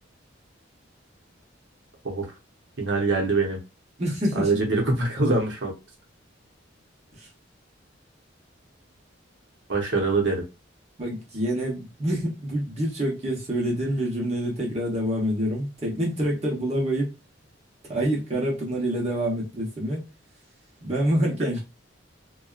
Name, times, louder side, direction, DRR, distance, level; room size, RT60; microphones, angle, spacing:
voice 1, 2.8-3.6 4.3-5.7 9.7-10.4, right 3 dB, 65° right, 0.9 m, -24 dB
voice 2, 4.0-4.5 7.2-7.3 11.0-17.1 17.9-20.0 20.8-21.6, right 1 dB, 35° right, 0.9 m, -26 dB
2.7 x 2.3 x 2.3 m
head